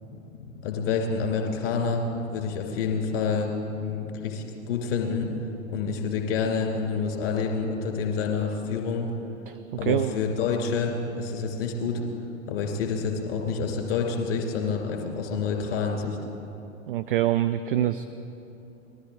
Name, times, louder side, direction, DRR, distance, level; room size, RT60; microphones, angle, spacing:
voice 1, 0.4-3.5 3.8-5.3 5.7-9.1 9.7-12.0 12.5-16.2, left 5 dB, 45° left, 2 dB, 2.5 m, -28 dB
voice 2, 9.5-10.2 16.9-18.0, right 12 dB, 40° right, 11 dB, 0.4 m, -25 dB
20.0 x 13.0 x 3.8 m, 2.9 s
figure-of-eight pair, 95°, 42 cm